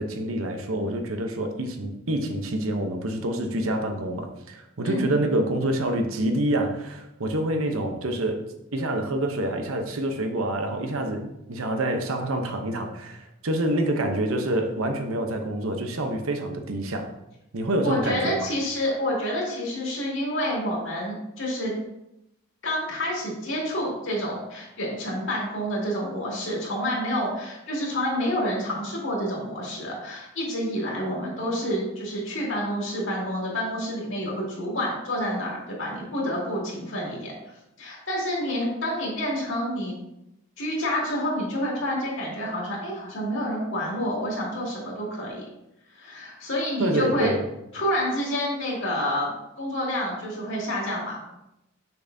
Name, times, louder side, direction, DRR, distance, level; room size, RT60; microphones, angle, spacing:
voice 1, 0.0-8.5 8.7-17.1 17.5-18.5 46.8-47.4, right 1 dB, 80° right, 5 dB, 0.8 m, -27 dB
voice 2, 17.8-21.7 22.6-37.3 37.8-40.0 40.6-45.4 45.9-47.3 47.7-49.3 49.6-51.2, equal, 60° left, -4 dB, 2.4 m, -28 dB
6.8 x 6.0 x 2.7 m, 0.86 s
head